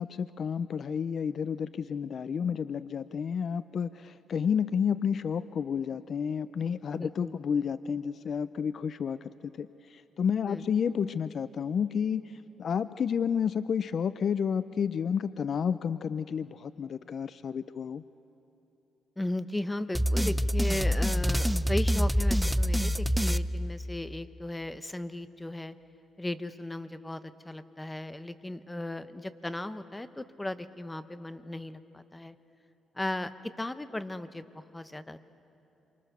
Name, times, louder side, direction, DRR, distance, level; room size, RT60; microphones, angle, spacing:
voice 1, 0.0-12.3 12.6-18.0, left 7 dB, 55° left, 15 dB, 0.5 m, -31 dB
voice 2, 6.9-7.3 10.4-10.7 19.2-25.8 26.2-32.4 32.9-35.3, left 1 dB, 10° left, 13 dB, 0.9 m, -36 dB
sound 1, 19.9-24.2, equal, 5° right, 0.5 m, -26 dB
27.5 x 24.5 x 6.7 m, 3.0 s
cardioid pair, 90°, 0 cm